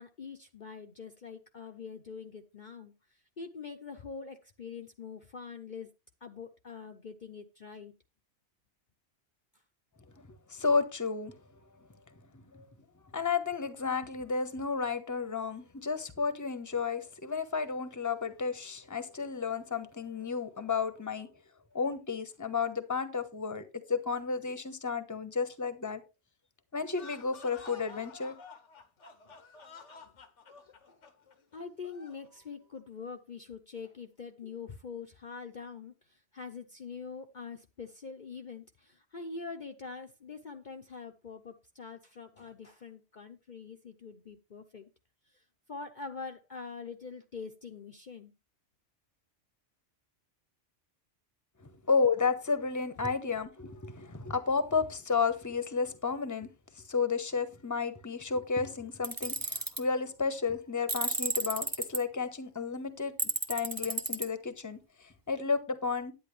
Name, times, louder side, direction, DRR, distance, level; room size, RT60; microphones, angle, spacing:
voice 1, 0.0-5.9 6.2-7.9 29.2-29.3 30.0-30.1 30.9-31.0 31.5-44.9 45.3-45.4 45.7-48.3, left 5 dB, 45° left, 0.9 m, -44 dB
voice 2, 10.1-11.3 12.3-12.7 13.1-21.3 21.7-26.0 26.7-28.4 51.9-56.5 56.9-66.1, left 5 dB, 15° left, 1.0 m, -32 dB
sound 1, 26.8-32.3, left 4 dB, 90° left, 1.6 m, -51 dB
Tools, 59.0-59.8 60.9-62.0 63.2-64.3, right 2 dB, 20° right, 1.0 m, -32 dB
10.5 x 9.4 x 3.2 m
omnidirectional pair, 1.2 m